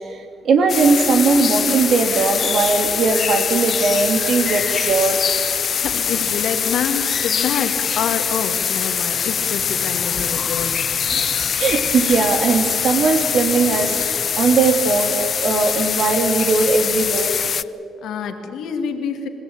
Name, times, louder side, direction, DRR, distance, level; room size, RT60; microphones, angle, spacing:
voice 1, 0.1-5.2 11.0-17.4, right 4 dB, 65° right, 6 dB, 3.0 m, -19 dB
sound 1, 0.7-17.6, left 7 dB, 55° left, 0.5 m, -23 dB
voice 2, 5.8-10.9 17.5-17.7 18.0-19.3, left 7 dB, 80° left, 6 dB, 2.2 m, -27 dB
26.0 x 16.0 x 9.0 m, 2.8 s
cardioid pair, 90°, 0 cm